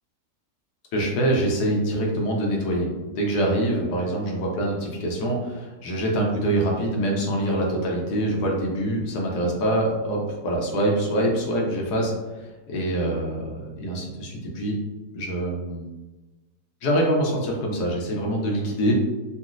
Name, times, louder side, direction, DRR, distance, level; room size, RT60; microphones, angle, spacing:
voice 1, 0.9-14.8 15.1-15.9 16.8-18.9, right 1 dB, 70° left, -1 dB, 1.2 m, -25 dB
3.9 x 2.1 x 2.4 m, 1.2 s
omnidirectional pair, 1.8 m